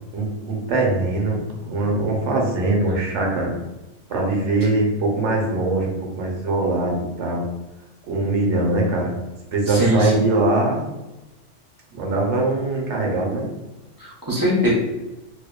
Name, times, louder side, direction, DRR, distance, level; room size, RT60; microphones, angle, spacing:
voice 1, 0.1-3.5 4.1-7.4 8.1-9.1 9.5-10.8 11.9-13.4, right 2 dB, 75° right, -1 dB, 0.9 m, -22 dB
voice 2, 9.7-10.2 14.0-14.7, equal, 25° right, -6 dB, 0.5 m, -21 dB
2.6 x 2.1 x 2.2 m, 1.0 s
omnidirectional pair, 1.2 m